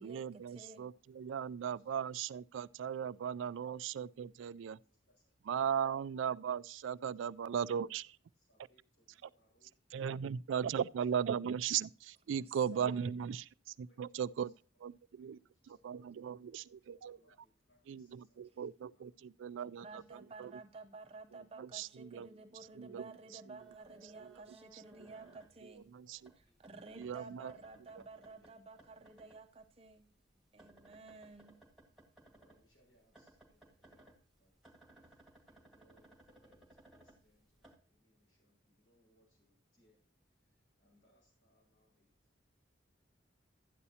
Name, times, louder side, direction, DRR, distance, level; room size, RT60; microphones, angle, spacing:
voice 1, 0.0-4.8 5.5-8.0 9.9-13.4 13.8-14.5 14.8-15.4 15.7-17.2 17.9-20.5 21.3-22.3 22.7-23.1 23.5-23.6 24.2-24.3 24.7-25.1 25.6-26.2 27.0-27.5, right 8 dB, 80° right, 0.3 m, -38 dB
voice 2, 0.6-1.3 1.7-1.8 2.6-2.8 4.9-5.3 7.9-8.0 8.3-10.2 10.9-11.1 12.3-12.9 13.8-14.6 14.9-16.1 16.3-18.6 18.9-20.2 22.0-22.1 22.6-23.2 23.8-23.9 24.6-24.7 26.0-27.3 28.1-29.4 32.2-34.6 34.9-40.0 40.3-42.4, equal, 70° left, 5.6 m, -74 dB
voice 3, 12.3-13.1 19.8-25.8 26.6-30.1 30.5-31.6, right 3 dB, 30° right, 0.6 m, -53 dB
sound 1, 23.6-25.9 26.2-29.4 29.7-32.6 33.1-37.8, right 2 dB, ahead, 2.0 m, -61 dB
12.5 x 9.6 x 2.8 m
head